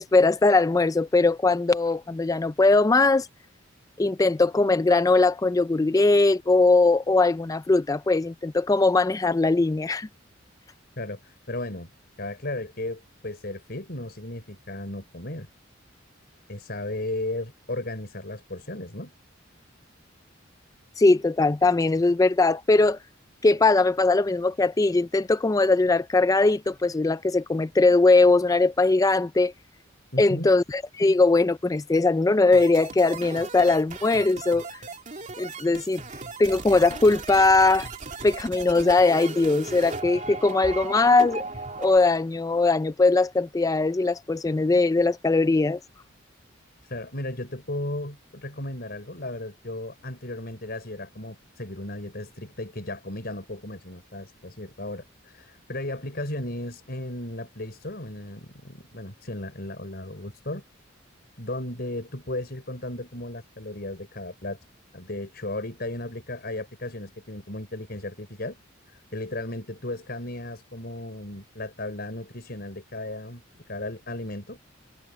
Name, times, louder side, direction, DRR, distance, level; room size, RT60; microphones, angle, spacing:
voice 1, 0.0-3.3 4.0-10.1 21.0-23.0 23.4-29.5 30.2-34.7 35.4-36.0 36.4-37.9 38.2-41.4 41.8-45.8, left 3 dB, 15° left, 0.3 m, -20 dB
voice 2, 11.0-11.9 12.2-15.5 16.5-19.1 30.1-30.5 46.8-60.6 61.4-64.6 64.9-68.6 68.9-73.4 73.7-74.6, left 1 dB, 50° left, 5.4 m, -35 dB
sound 1, 32.5-42.0, right 3 dB, 40° right, 2.7 m, -37 dB
head